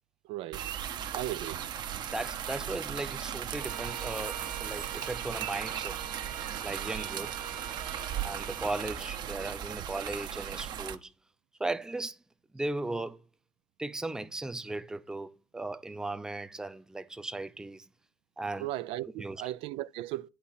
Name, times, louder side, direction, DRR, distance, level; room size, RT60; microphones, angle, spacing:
voice 1, 0.2-0.7 1.1-1.6 1.9-2.0 18.6-20.3, right 15 dB, 70° right, 0.4 m, -36 dB
sound 1, 0.5-11.0, right 10 dB, 50° right, 0.8 m, -37 dB
voice 2, 2.1-6.0 6.6-7.3 8.2-11.1 11.6-12.2 12.5-13.2 13.8-17.9 18.4-18.7 19.2-19.4, right 2 dB, 5° right, 0.5 m, -37 dB
Bowed string instrument, 3.6-9.0, right 9 dB, 85° right, 1.2 m, -44 dB
8.6 x 4.2 x 5.6 m
supercardioid pair, 110°, 10 cm